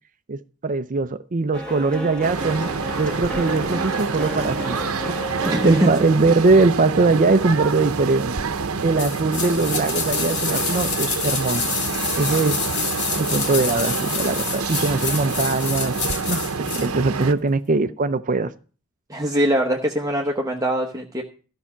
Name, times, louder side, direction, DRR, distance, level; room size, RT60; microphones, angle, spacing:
voice 1, 0.3-2.7 3.0-4.8 5.4-8.5 8.8-11.7 12.2-12.6 13.2-16.0 16.3-18.5, right 3 dB, 40° right, 0.5 m, -21 dB
sound 1, 1.5-7.3, equal, 5° left, 1.8 m, -33 dB
sound 2, 2.2-17.3, right 4 dB, 75° right, 0.8 m, -27 dB
voice 2, 5.5-5.9 19.1-21.2, equal, 15° right, 0.9 m, -22 dB
sound 3, 9.0-16.9 17.2-17.3, left 5 dB, 55° left, 1.6 m, -27 dB
13.5 x 5.6 x 7.1 m
head